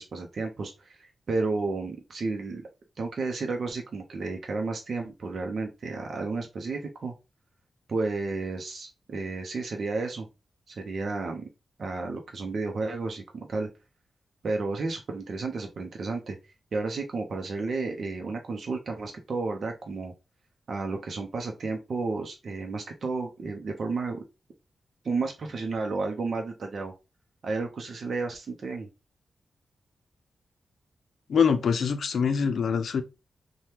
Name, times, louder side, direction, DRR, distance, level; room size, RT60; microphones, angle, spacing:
voice 1, 0.0-2.6 3.0-7.1 7.9-10.3 10.7-11.5 11.8-13.7 14.4-16.4 16.7-20.1 20.7-24.2 25.0-26.9 27.4-28.9, right 3 dB, 65° right, 0.6 m, -32 dB
voice 2, 31.3-33.0, left 6 dB, 80° left, 0.5 m, -24 dB
2.8 x 2.2 x 3.3 m
cardioid pair, 70°, 0 cm